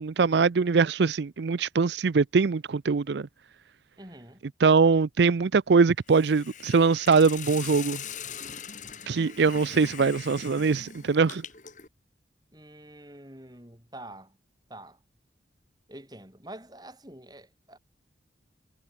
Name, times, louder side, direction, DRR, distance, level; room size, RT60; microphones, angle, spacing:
voice 1, 0.0-3.3 4.6-8.0 9.1-11.4, right 5 dB, 75° right, 0.5 m, -22 dB
voice 2, 4.0-4.4 12.5-14.4 14.7-15.0 15.9-17.8, right 1 dB, 20° right, 5.9 m, -46 dB
Hiss, 6.1-11.9, left 8 dB, 45° left, 6.5 m, -41 dB
head